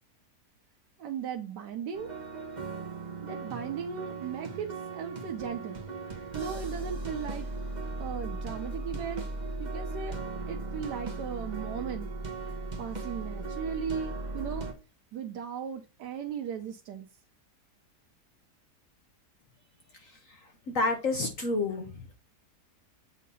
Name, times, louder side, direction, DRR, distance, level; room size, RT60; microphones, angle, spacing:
voice 1, 1.0-2.1 3.2-5.8 6.3-7.5 8.0-9.3 9.6-10.2 10.5-12.1 12.8-14.7 15.1-17.1, right 7 dB, 85° right, 1.3 m, -37 dB
sound 1, 1.9-14.7, right 3 dB, 30° right, 1.1 m, -37 dB
voice 2, 19.9-22.2, left 3 dB, 55° left, 1.3 m, -31 dB
7.3 x 2.8 x 5.4 m
omnidirectional pair, 1.8 m